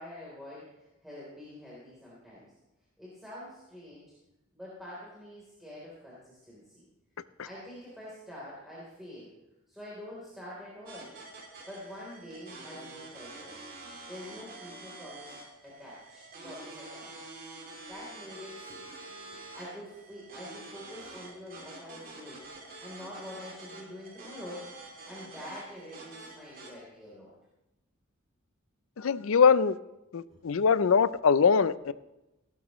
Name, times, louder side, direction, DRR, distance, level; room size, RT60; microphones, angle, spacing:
voice 1, 0.0-2.5 3.0-4.1 4.5-6.8 7.5-9.3 9.7-11.1 11.7-13.5 14.1-15.3 15.6-17.3 17.9-18.9 19.5-24.7 25.1-27.3 30.2-30.5, left 1 dB, ahead, -8 dB, 3.6 m, -46 dB
sound 1, 10.9-26.7, right 2 dB, 45° right, 2.9 m, -47 dB
voice 2, 29.0-29.8 30.1-31.9, left 6 dB, 75° left, 16 dB, 0.5 m, -23 dB
17.5 x 12.0 x 3.1 m, 0.97 s
head